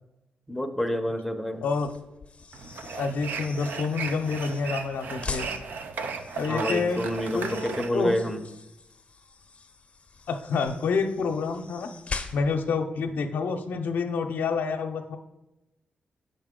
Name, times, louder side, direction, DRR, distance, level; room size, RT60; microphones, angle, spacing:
voice 1, 0.5-1.6 6.5-8.4, equal, ahead, 5 dB, 0.6 m, -28 dB
sound 1, 1.6-12.7, left 4 dB, 40° left, 0.6 m, -42 dB
sound 2, 2.5-7.9, right 5 dB, 80° right, 0.5 m, -35 dB
voice 2, 3.0-5.5 6.3-7.1 7.3-8.1 10.3-11.9 12.3-15.2, left 4 dB, 85° left, 5 dB, 0.6 m, -28 dB
7.2 x 5.5 x 3.7 m, 0.92 s
cardioid pair, 85°, 3 cm